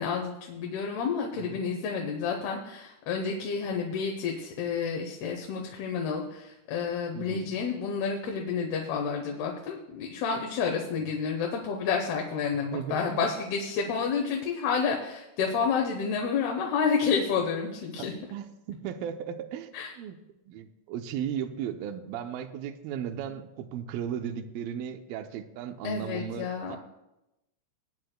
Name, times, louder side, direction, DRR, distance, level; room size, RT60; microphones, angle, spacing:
voice 1, 0.0-18.1 19.7-19.9 25.8-26.8, left 6 dB, 75° left, 1 dB, 2.9 m, -30 dB
voice 2, 7.1-7.5 12.7-13.3 18.3-19.7 20.0-20.2 20.5-26.8, right 8 dB, 80° right, 7 dB, 2.2 m, -36 dB
20.0 x 9.5 x 2.2 m, 0.91 s
omnidirectional pair, 4.8 m